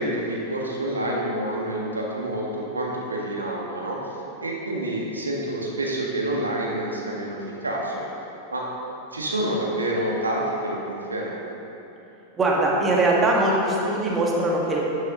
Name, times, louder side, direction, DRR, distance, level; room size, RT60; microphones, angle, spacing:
voice 1, 0.0-4.0 4.4-8.0 8.5-8.6 9.1-11.5, right 1 dB, 80° right, -2 dB, 1.8 m, -28 dB
voice 2, 12.3-14.8, right 2 dB, 20° right, -3 dB, 1.9 m, -21 dB
11.0 x 10.5 x 3.1 m, 3.0 s
figure-of-eight pair, 90°, 0 cm